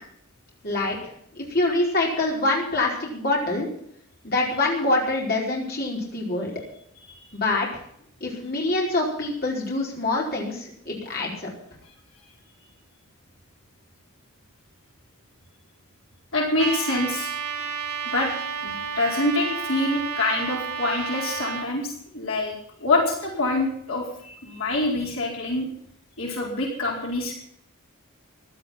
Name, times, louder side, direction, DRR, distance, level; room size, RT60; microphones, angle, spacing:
voice 1, 0.6-1.0 1.3-3.7 4.2-6.5 7.3-7.7 8.2-11.5, left 2 dB, 45° left, -2 dB, 4.8 m, -25 dB
voice 2, 16.3-17.3 18.1-18.3 18.6-25.7 26.2-27.3, left 2 dB, 65° left, -1 dB, 4.5 m, -26 dB
Trumpet, 16.6-21.7, right 6 dB, 90° right, 2.0 m, -31 dB
16.0 x 12.0 x 5.8 m, 0.68 s
head